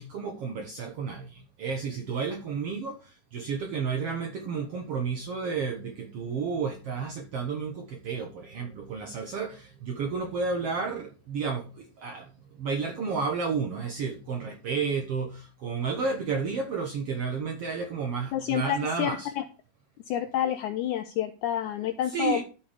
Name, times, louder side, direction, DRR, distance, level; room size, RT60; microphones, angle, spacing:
voice 1, 0.0-2.9 3.3-12.3 12.6-19.3 22.1-22.4, right 5 dB, 70° right, 1.4 m, -31 dB
voice 2, 18.3-19.4 20.1-22.4, left 10 dB, 90° left, 1.7 m, -29 dB
13.0 x 4.5 x 5.0 m
omnidirectional pair, 4.2 m